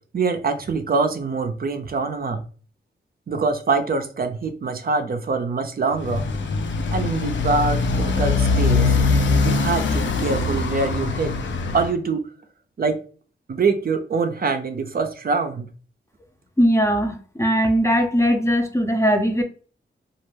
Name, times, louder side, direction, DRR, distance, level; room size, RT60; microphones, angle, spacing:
voice 1, 0.1-2.4 3.3-6.2 6.9-9.0 9.4-11.3 11.7-12.3 12.8-13.0 13.5-15.7, right 4 dB, 50° right, 6 dB, 0.4 m, -24 dB
Motorcycle, 5.9-11.9, left 4 dB, 70° left, 0.4 m, -22 dB
voice 2, 16.6-19.4, equal, 15° left, 4 dB, 0.5 m, -19 dB
2.3 x 2.1 x 3.2 m, 0.40 s
cardioid pair, 55°, 20 cm